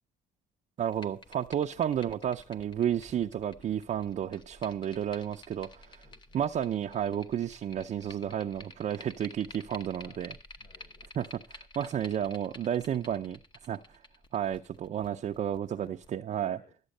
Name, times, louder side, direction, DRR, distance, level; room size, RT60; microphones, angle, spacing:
sound 1, 0.8-16.1, left 2 dB, 25° left, 1.0 m, -52 dB
voice 1, 0.8-6.0 6.3-10.3 11.2-13.4 13.7-14.0 14.3-16.6, right 9 dB, 45° right, 0.6 m, -32 dB
voice 2, 5.8-6.4 10.0-11.1 15.7-16.0 16.5-16.7, left 5 dB, 50° left, 5.0 m, -61 dB
13.0 x 8.1 x 6.6 m
cardioid pair, 110°, 17 cm